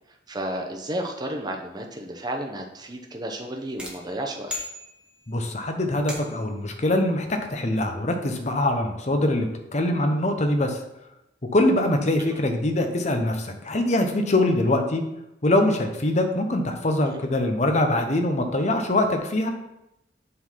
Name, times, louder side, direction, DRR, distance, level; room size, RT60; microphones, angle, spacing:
voice 1, 0.3-4.5, right 1 dB, 20° right, 2 dB, 0.9 m, -32 dB
sound 1, 3.8-5.4 6.1-6.6, left 1 dB, 5° right, 1.2 m, -37 dB
voice 2, 5.3-10.8 11.5-15.0 15.4-19.5, left 1 dB, 40° left, 5 dB, 0.9 m, -23 dB
7.7 x 4.0 x 5.6 m, 0.89 s
head